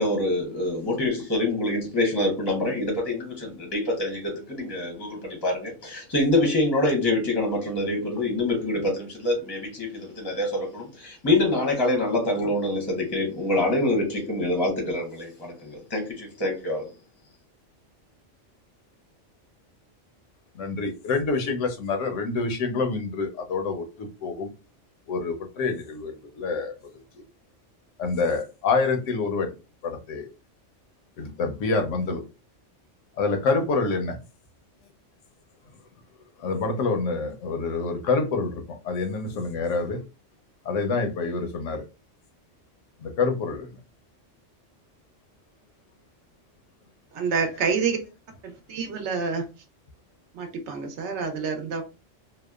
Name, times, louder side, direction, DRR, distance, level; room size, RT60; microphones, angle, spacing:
voice 1, 0.0-16.9, left 1 dB, 25° left, 0 dB, 0.6 m, -25 dB
voice 2, 20.6-24.5 25.1-26.7 28.0-29.5 29.8-30.3 31.2-32.2 33.2-34.2 36.4-40.0 40.7-41.8 43.0-43.7, left 4 dB, 90° left, 5 dB, 0.9 m, -27 dB
voice 3, 47.1-48.0 48.4-49.4 50.3-51.8, right 5 dB, 70° right, 5 dB, 0.9 m, -27 dB
2.7 x 2.0 x 2.2 m, 0.30 s
omnidirectional pair, 1.3 m